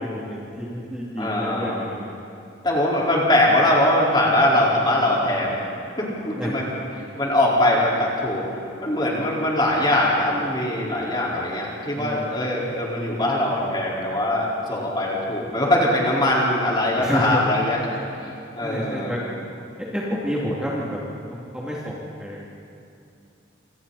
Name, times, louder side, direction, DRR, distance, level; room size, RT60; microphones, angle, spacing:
voice 1, 0.0-2.0 6.3-6.6 11.9-12.3 17.0-17.4 18.6-19.2 19.9-21.0 21.3-22.4, equal, 5° right, -6 dB, 2.9 m, -29 dB
voice 2, 1.2-1.8 2.6-5.6 6.0-6.7 6.9-17.8 18.2-19.3, left 1 dB, 25° left, -5 dB, 4.7 m, -22 dB
28.0 x 27.0 x 4.3 m, 2.7 s
head